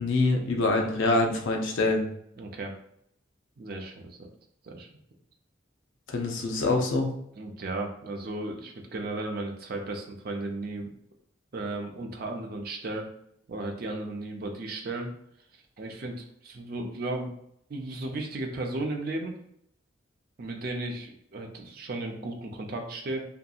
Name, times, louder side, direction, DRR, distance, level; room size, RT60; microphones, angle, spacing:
voice 1, 0.0-2.0 6.1-7.1, left 2 dB, 70° left, 2 dB, 0.5 m, -25 dB
voice 2, 2.4-2.7 3.6-4.3 4.6-4.9 7.4-10.9 11.5-13.1 13.5-15.1 15.8-17.3 17.7-19.3 20.4-23.3, right 2 dB, 50° right, 2 dB, 0.4 m, -35 dB
2.7 x 2.5 x 2.3 m, 0.71 s
head